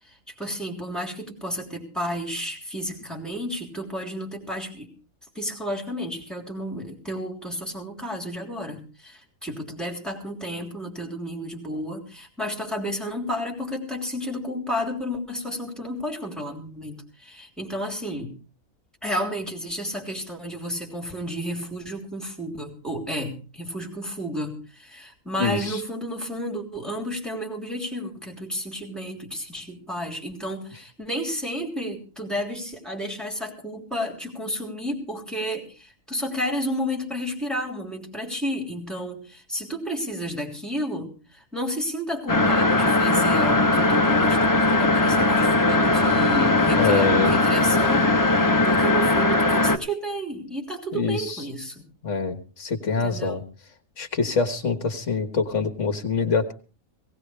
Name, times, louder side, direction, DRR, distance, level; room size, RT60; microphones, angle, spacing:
voice 1, 0.0-4.9 5.3-18.3 19.0-51.9 53.0-53.4, equal, ahead, 0 dB, 3.2 m, -32 dB
voice 2, 25.4-25.8 46.8-47.3 50.9-51.4 52.0-53.4 54.0-56.5, left 5 dB, 60° left, 7 dB, 1.8 m, -25 dB
sound 1, 42.3-49.8, left 2 dB, 20° left, 0.6 m, -19 dB
18.5 x 17.5 x 3.3 m, 0.36 s
omnidirectional pair, 1.4 m